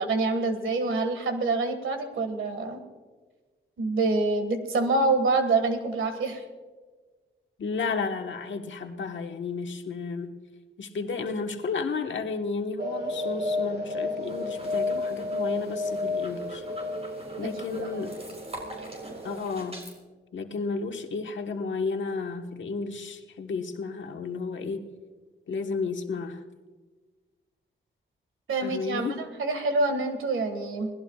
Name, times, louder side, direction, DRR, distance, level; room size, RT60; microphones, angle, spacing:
voice 1, 0.0-2.8 3.8-6.4 17.4-18.1 28.5-30.9, right 3 dB, 90° right, 7 dB, 1.8 m, -26 dB
voice 2, 7.6-10.4 10.8-16.6 17.4-18.1 19.2-19.9 20.3-24.9 25.5-26.4 28.6-29.2, left 4 dB, 70° left, 5 dB, 1.4 m, -32 dB
sound 1, 12.8-19.4, left 2 dB, 55° right, 1.8 m, -32 dB
sound 2, 14.2-20.0, right 1 dB, 30° right, 5.9 m, -45 dB
28.5 x 18.5 x 2.4 m, 1.4 s
cardioid pair, 70°, 20 cm